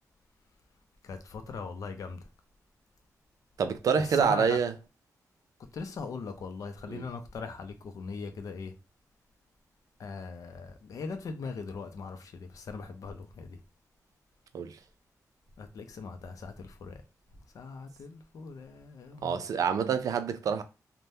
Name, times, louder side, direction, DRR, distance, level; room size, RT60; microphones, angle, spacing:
voice 1, 1.0-2.2 4.0-4.6 5.7-8.7 10.0-13.6 15.6-17.0 17.5-19.7, left 4 dB, 65° left, 0.5 m, -40 dB
voice 2, 3.6-4.7 6.9-7.1 14.5-14.8 19.2-20.6, right 6 dB, 65° right, 0.4 m, -27 dB
3.3 x 2.1 x 2.7 m
wide cardioid pair, 160°, 6 cm